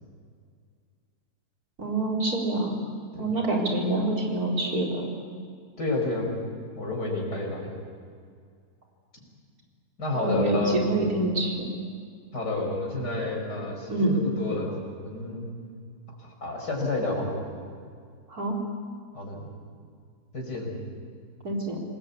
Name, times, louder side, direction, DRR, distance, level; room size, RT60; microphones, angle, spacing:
voice 1, 1.8-2.7 3.2-5.1 10.1-11.7 13.9-14.1 18.3-18.6 21.4-21.8, right 2 dB, 65° right, -1 dB, 4.7 m, -26 dB
voice 2, 5.8-6.3 6.8-7.8 10.0-10.8 12.3-15.5 16.2-17.5 19.1-19.5 20.3-20.8, left 2 dB, 80° left, 0 dB, 5.8 m, -30 dB
27.0 x 19.5 x 8.4 m, 2.2 s
omnidirectional pair, 1.8 m